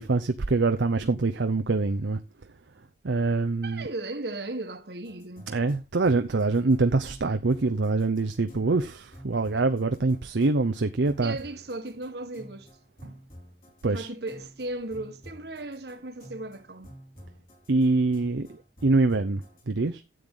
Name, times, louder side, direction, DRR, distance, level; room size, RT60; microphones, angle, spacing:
voice 1, 0.0-2.2 3.0-3.9 5.5-11.4 13.8-14.1 17.7-20.0, right 3 dB, 85° right, 0.7 m, -25 dB
voice 2, 3.6-5.5 11.2-12.7 13.9-16.9, right 2 dB, 65° right, 1.4 m, -36 dB
sound 1, 5.0-19.6, equal, 50° left, 5.2 m, -50 dB
12.5 x 8.0 x 3.7 m
head